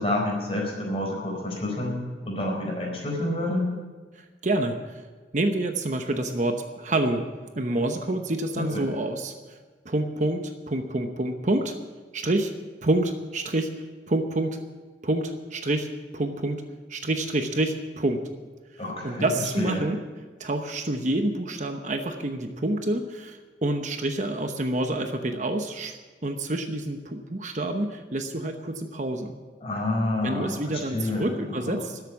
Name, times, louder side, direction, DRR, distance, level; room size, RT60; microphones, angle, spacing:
voice 1, 0.0-3.7 8.6-8.8 18.8-19.3 19.6-19.8 29.6-31.3 31.6-31.7, left 1 dB, 30° left, 0 dB, 4.3 m, -28 dB
voice 2, 4.2-5.0 5.3-7.3 7.6-9.6 9.8-11.8 12.1-12.5 12.8-14.6 15.0-16.6 16.9-18.2 18.7-20.0 20.4-29.3 30.2-32.0, right 1 dB, 40° right, 6 dB, 0.9 m, -28 dB
13.0 x 8.3 x 9.7 m, 1.4 s
head